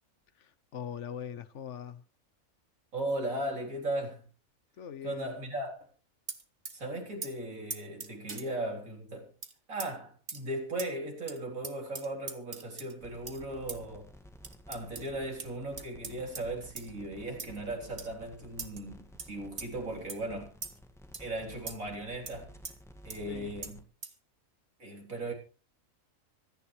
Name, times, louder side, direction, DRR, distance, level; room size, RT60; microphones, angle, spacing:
voice 1, 0.4-2.0 4.8-5.3 23.3-23.6, left 8 dB, 60° left, 1.1 m, -42 dB
voice 2, 2.9-4.3 5.0-5.9 6.7-9.3 9.7-14.1 14.7-20.5 21.2-22.5 23.0-23.8 24.8-25.3, right 1 dB, 75° right, 4.1 m, -37 dB
sound 1, 6.3-6.8 7.2-7.3 7.7-8.5 9.4-9.5 9.8-9.9 10.3-10.4 10.8-10.9 11.3-11.4 11.6-12.9 13.3-13.4 13.7-13.8 14.4-15.1 15.4-15.5 15.8-16.4 16.8-16.9 17.4-17.6 18.0-18.1 18.6-18.8 19.2-19.3 19.6-19.7 20.1-20.2 20.6-20.8 21.1-21.3 21.7-21.8 22.3-22.4 22.6-22.7 23.1-23.2 23.6-23.7 24.0-24.1, right 4 dB, 45° right, 1.7 m, -40 dB
sound 2, 13.0-23.8, equal, ahead, 1.7 m, -53 dB
25.5 x 10.0 x 3.2 m
omnidirectional pair, 1.4 m